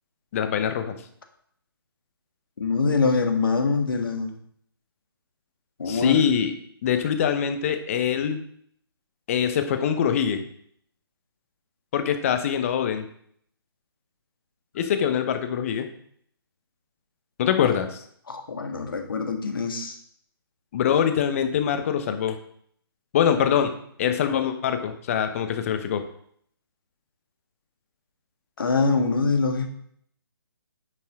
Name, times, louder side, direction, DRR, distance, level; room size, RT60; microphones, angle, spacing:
voice 1, 0.3-0.9 5.8-6.5 6.8-8.4 9.3-10.4 11.9-13.0 14.7-15.9 17.4-18.0 20.7-22.4 23.1-23.7 24.0-26.1, left 8 dB, 35° left, 8 dB, 1.2 m, -24 dB
voice 2, 2.6-4.4 5.8-6.2 17.6-17.7 18.3-20.0 28.6-29.7, left 4 dB, 60° left, 5 dB, 1.9 m, -24 dB
9.8 x 7.5 x 3.7 m, 0.66 s
figure-of-eight pair, 140°, 13 cm